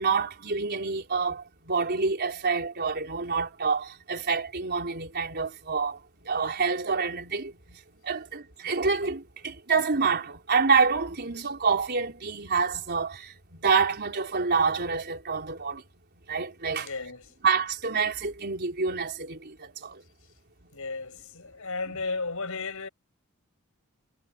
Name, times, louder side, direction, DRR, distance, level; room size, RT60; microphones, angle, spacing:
voice 1, 0.0-6.0 6.3-7.8 8.0-15.8 16.3-16.9 17.4-20.0, right 5 dB, 50° right, 4.2 m, -27 dB
voice 2, 16.7-17.3 20.7-22.9, left 4 dB, 70° left, 7.4 m, -34 dB
head